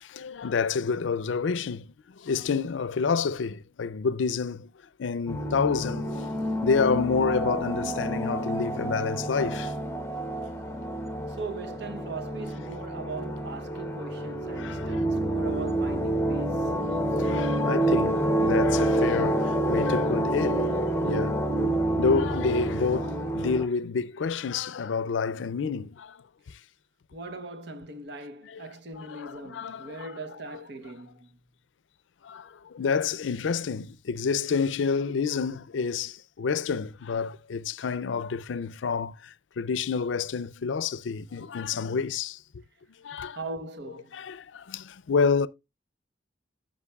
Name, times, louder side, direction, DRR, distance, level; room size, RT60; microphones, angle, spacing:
voice 1, 0.0-4.7 5.0-6.1 6.6-9.7 14.6-14.9 17.2-21.4 22.0-26.2 28.5-28.6 29.0-30.1 32.2-42.4 43.0-43.4 44.1-45.5, left 5 dB, 85° left, 0.5 m, -29 dB
sound 1, 5.3-23.7, right 1 dB, 15° left, 0.7 m, -28 dB
voice 2, 11.3-16.8 27.1-31.4 43.3-44.2, right 3 dB, 65° right, 0.9 m, -40 dB
13.5 x 5.2 x 2.3 m
head